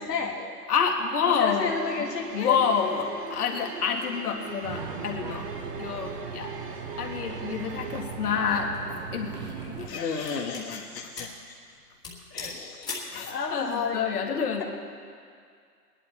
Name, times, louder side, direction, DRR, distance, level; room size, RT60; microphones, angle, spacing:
voice 1, 0.0-0.6 1.4-2.6 9.9-11.3 12.3-14.6, left 5 dB, 85° left, -1 dB, 1.7 m, -32 dB
voice 2, 0.7-1.7 2.0-5.5 5.8-6.5 7.0-8.7 9.1-10.8 13.1-14.6, left 6 dB, 65° left, 2 dB, 2.0 m, -28 dB
sound 1, 1.6-8.0, right 4 dB, 75° right, 1.8 m, -41 dB
sound 2, 4.6-9.9, right 6 dB, 30° right, 0.8 m, -38 dB
sound 3, 8.5-8.8 9.5-10.7 11.2-11.4 11.7-11.8 12.0-13.2, left 4 dB, 10° left, 1.4 m, -39 dB
19.5 x 11.0 x 4.5 m, 2.2 s
hypercardioid pair, 150°, 48 cm